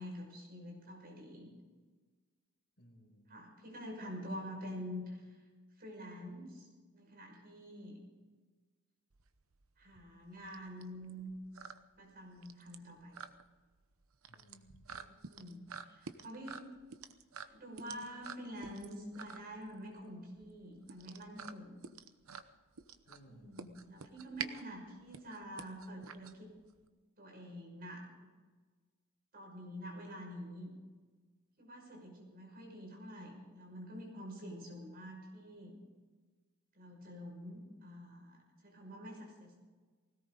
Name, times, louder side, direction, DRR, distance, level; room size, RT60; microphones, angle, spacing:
voice 1, 0.0-1.5 3.3-5.4 5.8-6.7 6.9-8.0 9.8-11.3 12.0-13.2 15.2-16.7 17.4-21.8 23.3-26.5 27.2-28.1 29.3-30.7 31.6-35.7 36.7-39.6, equal, 45° right, 0 dB, 5.9 m, -47 dB
voice 2, 2.8-3.3 14.3-15.2 23.0-23.6, equal, 50° left, 0 dB, 5.1 m, -61 dB
sound 1, 9.1-26.9, right 6 dB, 70° right, 0.9 m, -49 dB
20.0 x 18.0 x 3.9 m, 1.4 s
head